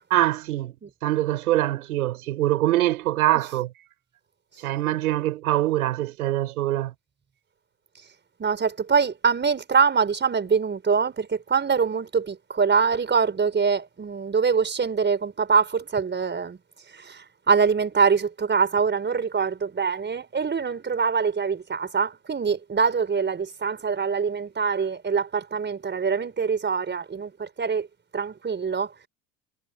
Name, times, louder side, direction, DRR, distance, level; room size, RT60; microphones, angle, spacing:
voice 1, 0.1-0.7 1.0-3.7 4.6-6.9, right 15 dB, 80° right, 5.3 m, -23 dB
voice 2, 8.4-16.6 16.9-27.9 28.1-28.9, right 5 dB, 25° right, 5.1 m, -24 dB
hypercardioid pair, 80°, 43 cm